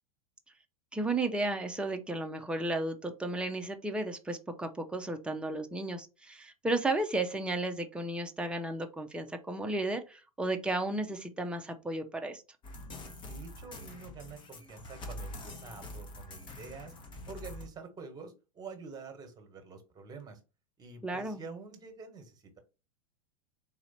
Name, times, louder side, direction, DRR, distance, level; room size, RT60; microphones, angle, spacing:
voice 1, 0.9-12.4 21.0-21.4, right 2 dB, 5° right, 0.7 m, -33 dB
sound 1, 12.6-17.7, left 1 dB, 25° left, 1.2 m, -45 dB
voice 2, 13.3-16.9 17.3-20.4 20.8-22.6, right 4 dB, 20° right, 1.5 m, -47 dB
4.1 x 2.8 x 4.4 m
figure-of-eight pair, 90°, 18 cm